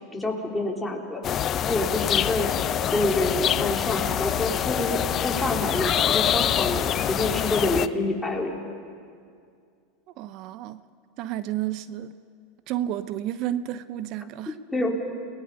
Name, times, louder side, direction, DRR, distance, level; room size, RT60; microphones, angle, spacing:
voice 1, 0.1-1.2 1.6-2.5 2.9-8.5 14.7-15.0, left 2 dB, 10° left, -1 dB, 3.6 m, -27 dB
sound 1, 1.2-7.9, left 10 dB, 40° left, 0.6 m, -25 dB
voice 2, 10.2-10.8 11.2-12.1 12.7-14.5, right 12 dB, 50° right, 14 dB, 0.7 m, -31 dB
29.5 x 19.0 x 5.5 m, 2.2 s
hypercardioid pair, 90°, 0 cm